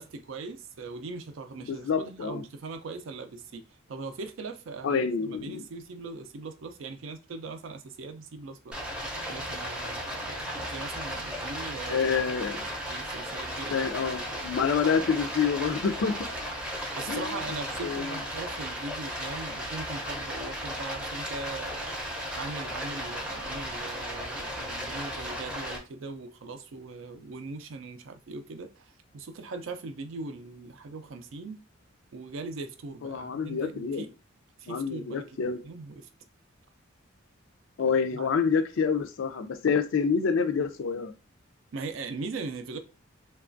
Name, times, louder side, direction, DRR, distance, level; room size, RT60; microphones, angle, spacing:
voice 1, 0.0-8.8 9.3-12.1 12.9-13.9 14.3-14.4 16.7-22.0 22.4-31.6 32.1-34.1 34.6-36.1 37.8-38.3 41.7-42.8, right 3 dB, 70° right, 0.4 m, -40 dB
voice 2, 1.6-2.4 4.8-5.6 11.9-12.7 13.7-16.2 17.1-17.3 17.8-18.1 33.0-34.0 34.7-35.6 37.8-41.1, left 6 dB, 70° left, 0.4 m, -27 dB
Stream, 8.7-25.8, equal, 5° right, 0.5 m, -35 dB
3.1 x 2.3 x 2.5 m
head